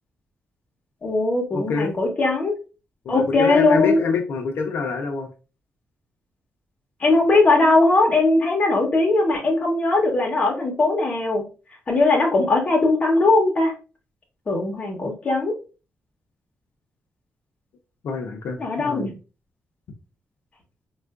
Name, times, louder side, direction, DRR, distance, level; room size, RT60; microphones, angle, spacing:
voice 1, 1.0-2.5 3.1-4.0 7.0-11.4 11.9-13.7 14.5-15.5 18.6-19.1, left 2 dB, 30° left, 0 dB, 0.9 m, -19 dB
voice 2, 1.5-1.9 3.1-5.3 18.0-19.0, left 4 dB, 70° left, 2 dB, 0.5 m, -26 dB
4.3 x 2.4 x 2.4 m, 0.33 s
wide cardioid pair, 175°, 4 cm